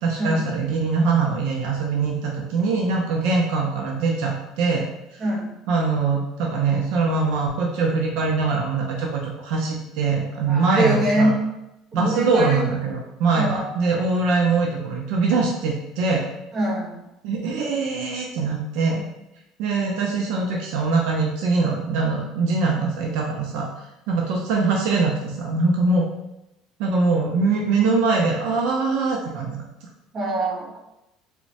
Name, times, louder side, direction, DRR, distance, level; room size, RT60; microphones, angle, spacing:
voice 1, 0.0-4.9 5.1-5.2 5.7-11.3 11.9-16.2 17.2-19.0 19.6-23.7 24.1-26.1 26.8-29.6, right 4 dB, 70° right, -1 dB, 0.4 m, -22 dB
voice 2, 10.5-11.4 11.9-12.8 13.3-13.7 16.5-17.0 30.1-30.8, right 1 dB, 30° right, -4 dB, 0.7 m, -23 dB
3.0 x 2.1 x 2.7 m, 0.88 s
cardioid pair, 160°, 0 cm